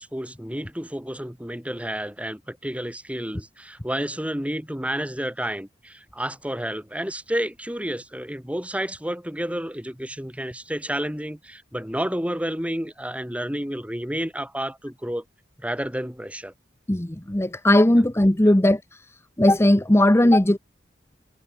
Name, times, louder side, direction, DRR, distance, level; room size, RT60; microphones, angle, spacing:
voice 1, 0.0-15.2 15.6-16.5 17.9-18.0 18.4-18.5, equal, 10° right, 6.5 m, -30 dB
voice 2, 16.9-18.8 19.4-20.6, left 1 dB, 15° left, 0.9 m, -17 dB
head